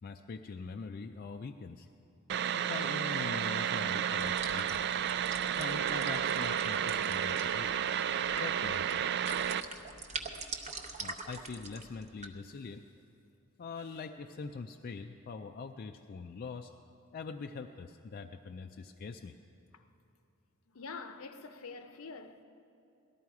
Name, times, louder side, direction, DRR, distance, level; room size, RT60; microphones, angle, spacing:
voice 1, 0.0-1.9 2.5-5.0 5.6-7.7 8.4-9.1 11.0-12.9 13.6-16.7 17.1-19.3, left 4 dB, 40° left, 0.4 m, -43 dB
sound 1, 2.3-9.6, right 9 dB, 50° right, 0.3 m, -32 dB
sound 2, 4.2-12.3, right 3 dB, 30° right, 0.8 m, -44 dB
voice 2, 20.7-22.4, left 4 dB, 65° left, 0.7 m, -45 dB
18.0 x 12.5 x 4.7 m
head